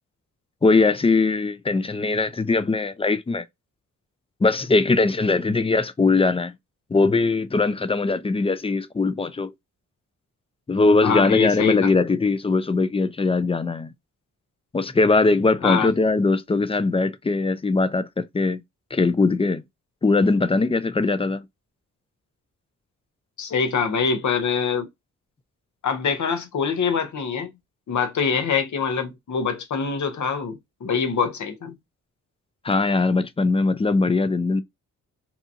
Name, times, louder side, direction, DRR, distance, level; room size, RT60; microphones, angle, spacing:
voice 1, 0.6-3.4 4.4-6.5 6.9-9.5 10.7-13.9 14.7-18.6 18.9-19.6 20.0-21.4 32.6-34.6, left 3 dB, 20° left, 0.4 m, -21 dB
voice 2, 11.0-11.9 15.6-15.9 23.4-24.9 25.8-27.5 27.9-31.7, left 5 dB, 60° left, 0.9 m, -24 dB
2.8 x 2.3 x 2.6 m
cardioid pair, 60°, 33 cm